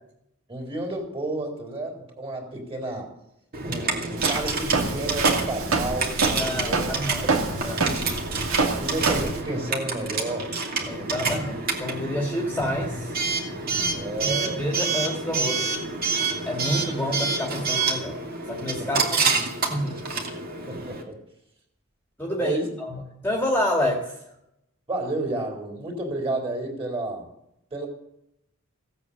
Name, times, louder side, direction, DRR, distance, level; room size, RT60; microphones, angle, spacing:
voice 1, 0.5-3.1 3.6-6.9 7.6-8.0 8.8-10.5 10.8-11.1 13.9-14.6 18.8-18.9 20.7-21.1 22.4-22.7 24.9-27.3 27.7-27.9, right 2 dB, 25° right, 1 dB, 3.8 m, -31 dB
Coin (dropping) / Alarm, 3.5-21.0, right 4 dB, 45° right, 2.5 m, -28 dB
Walk footsteps, 4.2-9.4, right 3 dB, 75° right, 2.2 m, -26 dB
voice 2, 6.3-7.8 10.9-13.1 14.2-15.8 16.5-18.2 18.5-20.0 22.2-24.1, left 1 dB, 10° left, 1 dB, 2.0 m, -29 dB
16.5 x 8.7 x 7.2 m, 0.81 s
head